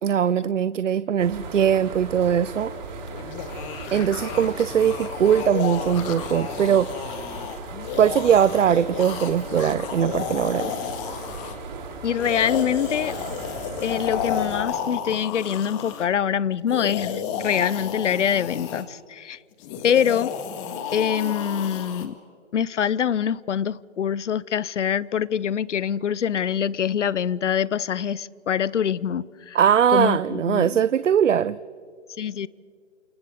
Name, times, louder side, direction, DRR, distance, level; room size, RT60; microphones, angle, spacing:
voice 1, 0.0-2.7 3.9-6.9 8.0-10.7 29.5-31.6, right 8 dB, 75° right, 16 dB, 0.7 m, -21 dB
sound 1, 1.2-14.6, right 3 dB, 40° right, 7.5 m, -37 dB
sound 2, 3.1-11.6 12.1-16.1 16.6-18.8 19.6-22.1, left 8 dB, 25° left, 1.8 m, -32 dB
voice 2, 12.0-13.1 13.8-19.4 19.8-20.3 20.9-22.1 22.5-29.6 29.9-30.8 32.2-32.5, left 8 dB, 70° left, 21 dB, 0.8 m, -24 dB
29.0 x 28.5 x 3.6 m, 2.1 s
hypercardioid pair, 145°, 37 cm